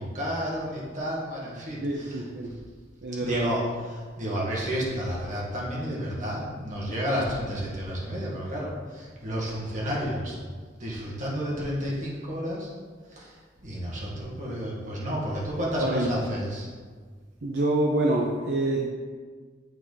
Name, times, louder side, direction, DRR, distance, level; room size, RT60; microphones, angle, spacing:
voice 1, 0.0-2.2 3.2-3.6 3.9-10.3 10.8-12.7 13.2-13.3 13.6-16.7, equal, 45° right, -5 dB, 1.9 m, -31 dB
voice 2, 1.8-2.5 3.0-3.5 15.8-16.1 17.4-18.9, right 1 dB, 65° right, -2 dB, 0.7 m, -26 dB
8.0 x 4.7 x 4.0 m, 1.5 s
head